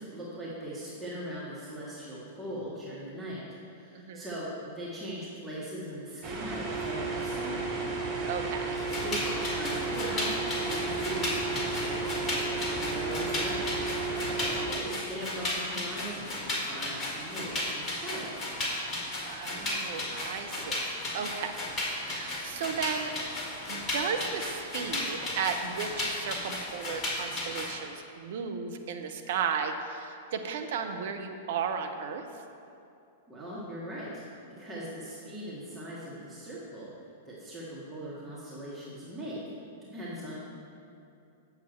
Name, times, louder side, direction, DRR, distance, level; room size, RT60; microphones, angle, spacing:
voice 1, 0.0-7.7 8.9-18.4 33.3-34.2 34.6-36.9 37.3-39.4 39.9-40.3, right 1 dB, 15° right, -8 dB, 1.9 m, -40 dB
voice 2, 3.9-4.3 8.3-8.7 19.2-21.5 22.0-23.1 23.7-32.2, right 6 dB, 55° right, 6 dB, 0.7 m, -35 dB
sound 1, 6.2-14.7, right 3 dB, 35° right, 1.6 m, -33 dB
sound 2, 8.8-27.7, left 1 dB, 25° left, 1.8 m, -34 dB
8.0 x 7.0 x 4.5 m, 2.7 s
figure-of-eight pair, 100°, 0 cm